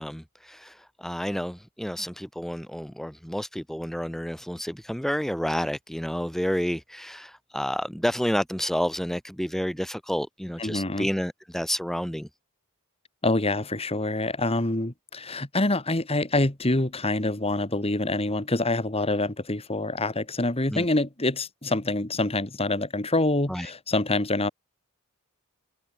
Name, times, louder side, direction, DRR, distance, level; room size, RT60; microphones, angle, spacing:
voice 1, 0.0-12.3 20.7-20.9 23.5-23.7, equal, ahead, 1.0 m, -30 dB
voice 2, 10.6-11.1 13.2-24.5, left 2 dB, 25° left, 2.1 m, -26 dB
head